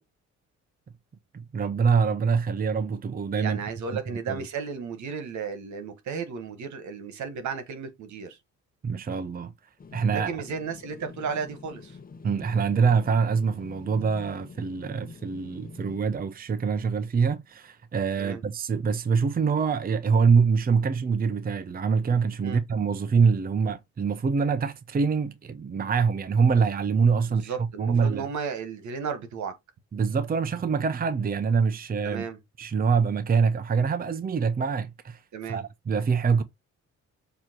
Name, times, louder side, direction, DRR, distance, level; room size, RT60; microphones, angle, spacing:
voice 1, 1.3-3.6 4.3-4.5 8.8-9.5 9.9-10.3 12.2-27.5 27.8-28.3 29.9-32.2 32.6-35.2 35.5-36.4, right 5 dB, 30° right, 0.7 m, -25 dB
voice 2, 3.4-8.4 10.1-12.0 18.2-18.4 22.4-22.6 27.2-29.5 32.0-32.4 35.3-35.6, right 6 dB, 70° right, 1.6 m, -34 dB
sound 1, 9.8-16.0, left 4 dB, 30° left, 0.9 m, -46 dB
7.1 x 3.0 x 4.5 m
cardioid pair, 90°, 30 cm